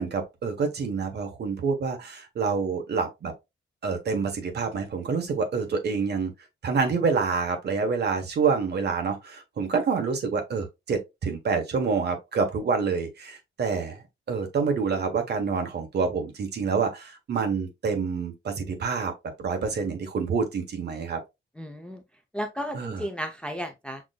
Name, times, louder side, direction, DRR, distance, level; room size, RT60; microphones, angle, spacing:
voice 1, 0.0-3.3 3.8-6.3 6.6-19.1 19.4-21.2 22.7-23.1, right 5 dB, 55° right, 1.0 m, -27 dB
voice 2, 21.6-22.0 22.3-24.0, equal, 5° left, 0.4 m, -33 dB
6.0 x 2.5 x 2.2 m
wide cardioid pair, 170°, 21 cm